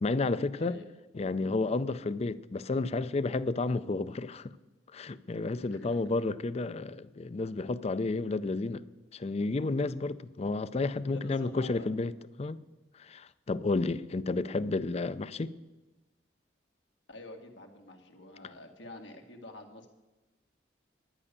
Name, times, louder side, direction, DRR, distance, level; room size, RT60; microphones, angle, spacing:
voice 1, 0.0-0.8 1.1-4.5 4.9-8.8 9.1-12.1 12.4-12.6 13.0-15.5, left 3 dB, 35° left, 0.4 m, -31 dB
voice 2, 11.1-11.9 17.1-19.9, left 2 dB, 85° left, 1.9 m, -47 dB
11.0 x 9.6 x 6.8 m
head